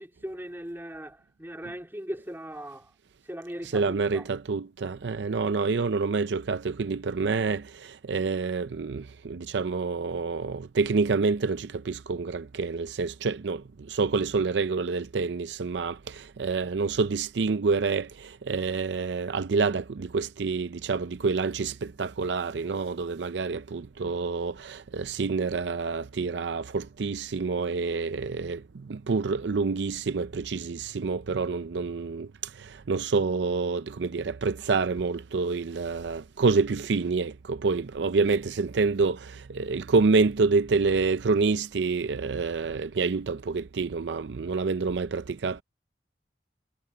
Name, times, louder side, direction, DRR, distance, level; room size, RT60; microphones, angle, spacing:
voice 1, 0.0-2.9 3.3-4.3, equal, 10° right, 3.0 m, -39 dB
voice 2, 3.6-45.6, right 4 dB, 70° right, 0.5 m, -27 dB
head